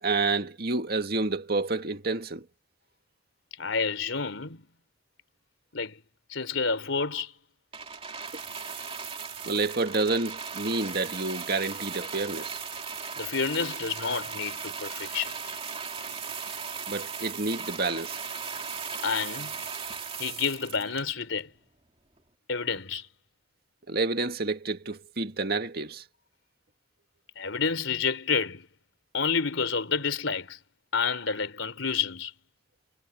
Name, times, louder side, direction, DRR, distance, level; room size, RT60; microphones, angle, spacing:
voice 1, 0.0-2.4 9.5-12.6 16.9-18.2 23.9-26.0, right 3 dB, 50° right, 2.2 m, -29 dB
voice 2, 3.6-4.7 5.7-6.0 6.3-7.3 13.2-15.4 19.0-19.6 20.2-21.5 22.5-23.1 27.4-28.7 29.1-30.6 30.9-32.3, left 5 dB, 85° left, 3.4 m, -29 dB
sound 1, 7.7-21.4 22.2-22.3, right 6 dB, 30° right, 2.4 m, -37 dB
head